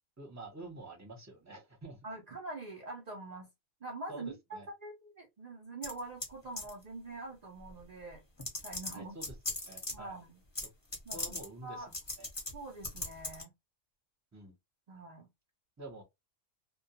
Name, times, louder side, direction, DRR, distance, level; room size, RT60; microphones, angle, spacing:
voice 1, 0.2-2.0 4.1-4.7 8.9-9.3 9.7-10.2 11.1-11.8 12.2-12.3 14.3-14.5 15.8-16.0, right 2 dB, 20° right, 0.5 m, -47 dB
voice 2, 2.0-3.5 3.8-8.2 8.6-9.2 9.9-10.4 11.0-11.2 11.6-11.9 12.5-13.5 14.9-15.3, right 2 dB, 65° right, 0.4 m, -44 dB
sound 1, 5.8-6.3 6.6-6.8 7.8-7.9 8.4-9.9 10.6-10.7 10.9-11.5 11.9-12.5 12.8-13.4, left 2 dB, 25° left, 0.7 m, -38 dB
2.2 x 2.2 x 2.7 m
omnidirectional pair, 1.3 m